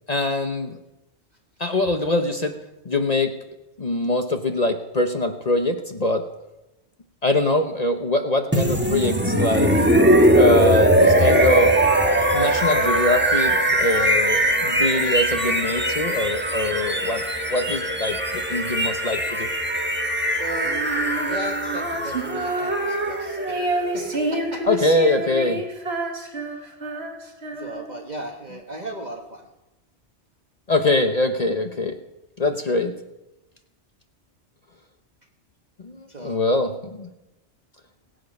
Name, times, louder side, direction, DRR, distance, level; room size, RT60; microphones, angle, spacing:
voice 1, 0.1-0.8 1.6-2.6 2.8-3.3 3.8-6.3 7.2-9.9 10.3-11.7 12.3-17.2 17.5-19.5 24.6-25.6 30.7-32.0 32.4-32.9 35.8-37.1, left 2 dB, 40° left, 6 dB, 0.9 m, -23 dB
sound 1, 8.5-24.4, right 1 dB, 10° right, 1.1 m, -21 dB
voice 2, 20.4-24.6 26.6-26.7 27.5-29.5 36.1-36.4, right 2 dB, 40° right, 1 dB, 1.4 m, -36 dB
Female singing, 20.7-28.0, right 2 dB, 65° right, 1.8 m, -28 dB
21.5 x 7.9 x 5.3 m, 0.99 s
omnidirectional pair, 1.2 m